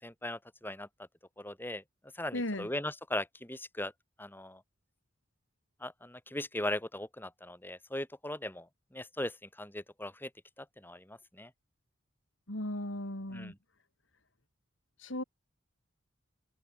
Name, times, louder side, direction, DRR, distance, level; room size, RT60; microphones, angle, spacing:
voice 1, 0.0-0.9 1.4-1.8 2.1-3.9 4.2-4.6 5.8-8.7 8.9-10.3 10.6-11.5 13.3-13.6, left 1 dB, 10° left, 6.2 m, -39 dB
voice 2, 2.3-2.7 12.5-13.5 15.0-15.2, left 1 dB, 80° left, 4.1 m, -36 dB
head